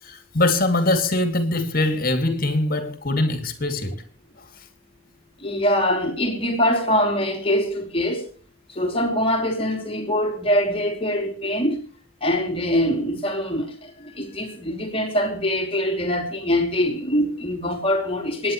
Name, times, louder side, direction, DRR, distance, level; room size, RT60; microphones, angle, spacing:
voice 1, 0.0-4.0 4.6-4.7, left 2 dB, 45° left, 2.5 m, -22 dB
voice 2, 5.4-8.2 8.7-11.8 12.2-18.5, equal, 25° left, 2.9 m, -23 dB
26.5 x 10.0 x 3.2 m
head